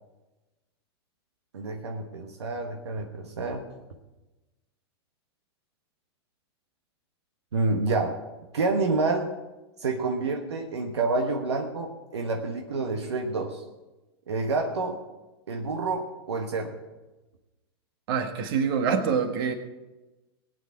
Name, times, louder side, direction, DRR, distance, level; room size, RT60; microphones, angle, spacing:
voice 1, 1.5-3.7 7.5-8.2 8.5-9.3 9.8-13.6 14.3-15.0 15.5-16.8, right 3 dB, 85° right, 3 dB, 1.3 m, -28 dB
voice 2, 18.1-19.5, right 6 dB, 60° right, 6 dB, 1.6 m, -25 dB
19.0 x 9.2 x 4.6 m, 1.1 s
hypercardioid pair, 100°, 14 cm